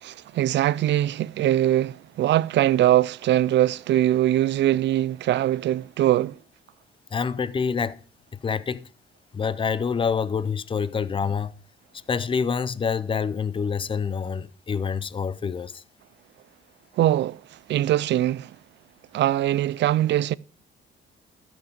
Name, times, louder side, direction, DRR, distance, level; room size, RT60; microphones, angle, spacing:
voice 1, 0.0-6.4 16.9-18.6 19.1-20.4, right 13 dB, 65° right, 0.4 m, -22 dB
voice 2, 7.1-8.0 8.4-8.9 9.3-11.5 12.1-15.8, left 6 dB, 25° left, 0.6 m, -26 dB
13.0 x 6.1 x 5.1 m
cardioid pair, 90°, 20 cm